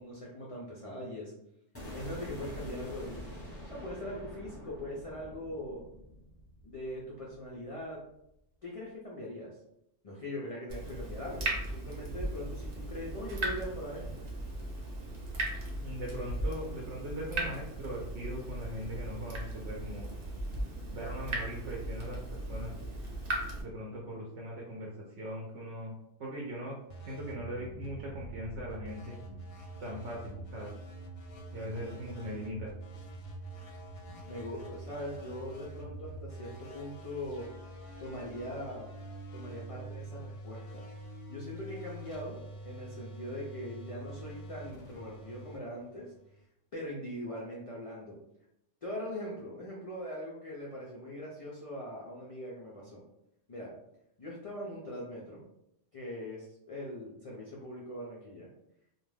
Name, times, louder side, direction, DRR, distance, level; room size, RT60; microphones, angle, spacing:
voice 1, 0.0-1.3 1.9-3.3 3.7-5.8 6.6-8.0 8.6-9.5 10.0-14.0 31.6-32.5 34.2-37.5 38.0-38.9 39.3-40.8 41.3-42.4 42.6-46.1 46.7-48.2 48.8-53.0 53.5-53.7 54.2-55.4 55.9-58.5, equal, 65° left, -4 dB, 0.3 m, -41 dB
sound 1, 1.7-7.8, left 1 dB, 15° left, 0.6 m, -46 dB
Water tap faucet / Drip, 10.7-23.6, right 1 dB, 45° right, 0.6 m, -37 dB
voice 2, 15.8-20.1 20.9-22.7 23.6-25.9 26.2-26.8 27.0-29.2 29.8-30.7 31.5-32.7, equal, 70° right, -2 dB, 0.9 m, -40 dB
sound 2, 26.9-46.4, right 1 dB, 90° left, 1.0 m, -46 dB
2.4 x 2.2 x 3.2 m, 0.81 s
omnidirectional pair, 1.3 m